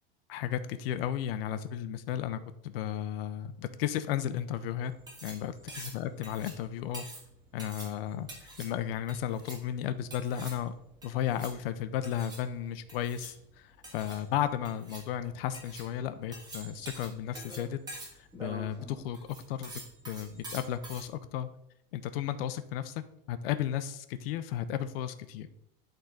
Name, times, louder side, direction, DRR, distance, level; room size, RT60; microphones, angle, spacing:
voice 1, 0.3-4.9 5.2-7.0 7.5-10.7 11.0-17.8 18.3-19.7 20.1-21.5 21.9-23.0 23.3-25.5, left 10 dB, 75° left, 12 dB, 0.8 m, -34 dB
sound 1, 4.8-21.1, right 2 dB, 15° right, 1.7 m, -47 dB
11.5 x 3.9 x 3.8 m, 0.78 s
supercardioid pair, 170°, 29 cm